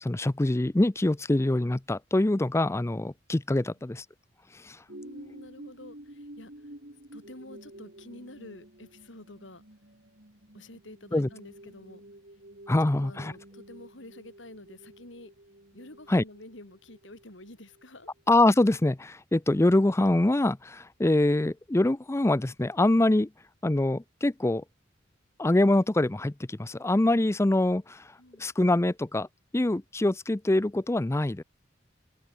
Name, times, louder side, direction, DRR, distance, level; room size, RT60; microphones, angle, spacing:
voice 1, 0.0-4.0 4.6-4.8 11.1-11.3 12.7-13.3 16.1-16.2 18.3-23.3 23.6-24.6 25.4-28.0 28.4-29.3 29.5-31.4, left 1 dB, 15° left, 0.5 m, -24 dB
voice 2, 4.9-6.7 7.1-9.6 10.5-12.0 13.0-15.3 15.7-18.1 28.2-28.5, left 1 dB, 80° left, 4.6 m, -49 dB
sound 1, 4.9-18.4 18.9-19.0, right 1 dB, 55° right, 4.5 m, -50 dB
head